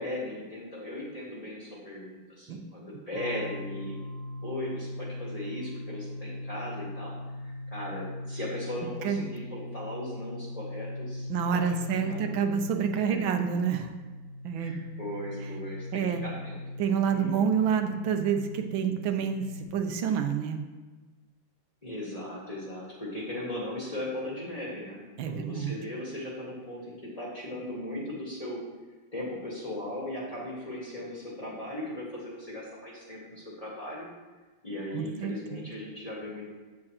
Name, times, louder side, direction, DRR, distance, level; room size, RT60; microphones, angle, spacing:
voice 1, 0.0-4.0 4.4-12.4 12.9-13.2 14.6-16.6 17.1-17.5 21.8-25.0 25.2-28.6 29.1-34.1 34.6-36.5, left 1 dB, 20° left, -5 dB, 1.6 m, -38 dB
sound 1, 3.1-19.6, left 1 dB, 65° right, 1.5 m, -40 dB
voice 2, 11.3-13.9 14.4-14.8 15.9-16.2 16.8-20.6 25.2-25.7 34.9-35.6, right 7 dB, 85° right, 6 dB, 1.5 m, -28 dB
8.6 x 7.5 x 2.9 m, 1.3 s
omnidirectional pair, 2.2 m